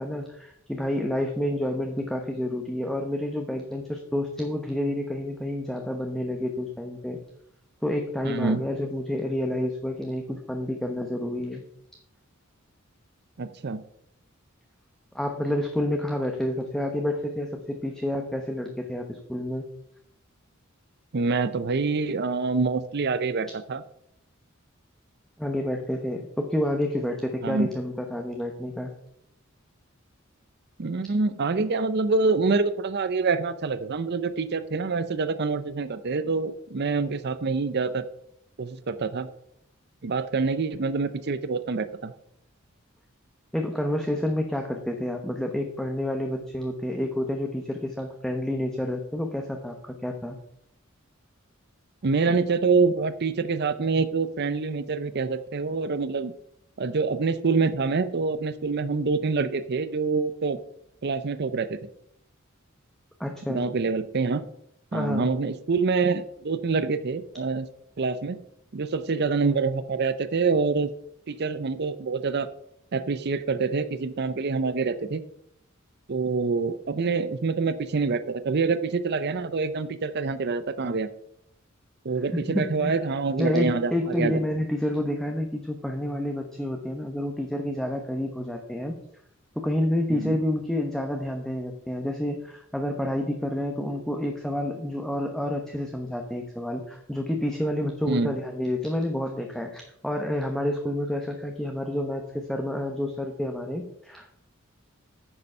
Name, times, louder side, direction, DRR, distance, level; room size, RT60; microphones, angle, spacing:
voice 1, 0.0-7.2 7.8-11.7 15.1-19.7 25.4-28.9 43.5-50.4 63.2-63.7 64.9-65.3 82.3-83.0 83.4-88.9 89.6-104.4, left 1 dB, ahead, 3 dB, 0.9 m, -29 dB
voice 2, 8.2-8.6 13.4-13.8 21.1-23.8 27.4-27.7 30.8-38.0 38.6-39.3 40.0-42.1 52.0-56.3 56.8-60.6 61.0-61.8 63.5-64.5 64.9-67.7 68.0-68.4 68.7-70.9 71.3-72.5 72.9-75.2 76.1-81.1 82.0-84.4 90.1-90.4 98.1-98.3, right 4 dB, 55° right, 12 dB, 0.6 m, -26 dB
9.8 x 6.8 x 5.5 m, 0.73 s
head